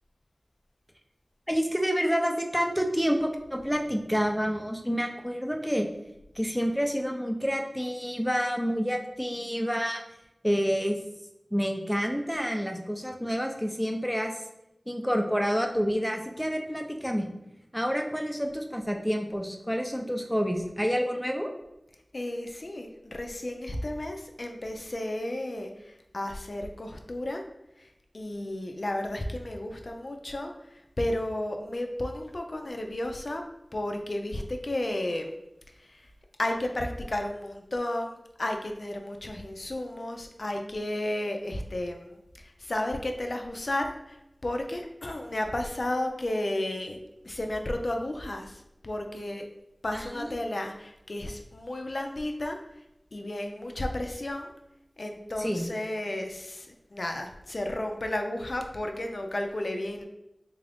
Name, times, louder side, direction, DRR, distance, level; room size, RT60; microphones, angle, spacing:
voice 1, 1.5-5.9 6.4-10.0 10.4-11.0 11.5-14.3 14.9-17.3 17.7-21.5 49.9-50.3 55.4-55.6, equal, ahead, 3 dB, 0.4 m, -28 dB
voice 2, 22.1-27.4 27.8-27.9 28.1-33.4 33.7-35.3 35.7-36.1 36.4-47.0 47.2-49.5 49.8-52.6 53.1-54.5 55.0-60.0, left 1 dB, 65° left, 4 dB, 0.4 m, -33 dB
3.5 x 2.5 x 3.4 m, 0.88 s
wide cardioid pair, 55°, 0 cm